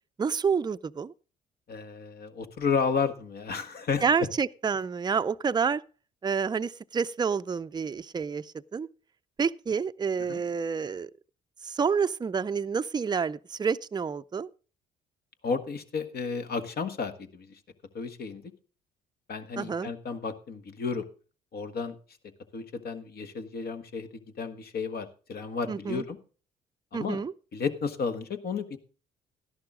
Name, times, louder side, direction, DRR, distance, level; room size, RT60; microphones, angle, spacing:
voice 1, 0.2-1.1 4.0-5.8 6.2-8.9 9.4-11.1 11.6-14.5 19.6-19.9 25.7-26.0 26.9-27.3, right 6 dB, 20° right, 0.5 m, -28 dB
voice 2, 1.7-4.3 10.3-10.4 15.4-17.6 17.9-18.5 19.3-21.0 21.5-21.9 22.5-26.2 26.9-27.2 27.5-28.8, left 5 dB, 55° left, 1.5 m, -32 dB
12.5 x 11.5 x 3.7 m
hypercardioid pair, 55°, 19 cm